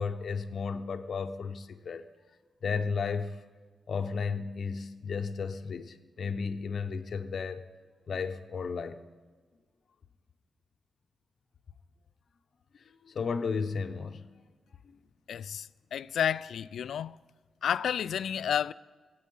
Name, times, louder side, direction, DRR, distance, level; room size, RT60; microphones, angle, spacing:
voice 1, 0.0-2.0 2.6-3.4 3.9-7.6 8.1-9.0 12.7-14.2 14.8-15.0, left 5 dB, 55° left, 0.7 m, -34 dB
voice 2, 15.3-17.2 17.6-18.7, left 9 dB, 85° left, 0.3 m, -31 dB
23.5 x 8.5 x 5.4 m
wide cardioid pair, 145°, 0 cm